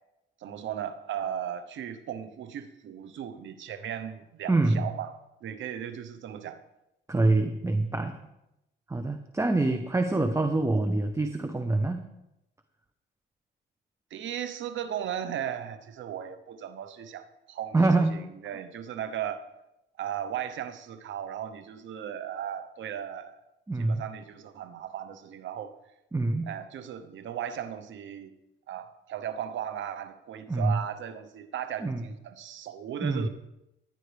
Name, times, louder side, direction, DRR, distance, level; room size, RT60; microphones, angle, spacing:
voice 1, 0.4-5.1 5.4-6.6 7.2-7.4 14.1-19.4 20.0-23.3 23.8-25.7 26.5-28.3 28.7-33.3, right 9 dB, 75° right, 11 dB, 1.0 m, -36 dB
voice 2, 4.5-4.9 7.1-8.1 8.9-12.1 17.7-18.2 23.7-24.0 26.1-26.5 30.5-30.8 31.8-32.0 33.0-33.3, right 2 dB, 15° right, 7 dB, 0.9 m, -25 dB
18.0 x 10.5 x 3.4 m, 0.90 s
cardioid pair, 90°, 20 cm